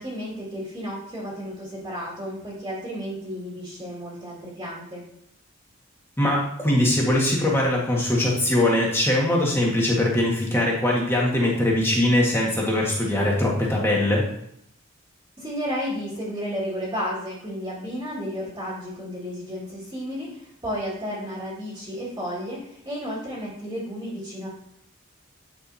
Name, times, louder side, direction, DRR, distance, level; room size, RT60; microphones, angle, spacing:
voice 1, 0.0-5.0 15.4-24.5, equal, 20° right, -7 dB, 1.9 m, -32 dB
voice 2, 6.2-14.3, left 1 dB, 10° left, -3 dB, 1.6 m, -21 dB
9.8 x 5.1 x 2.7 m, 0.71 s
head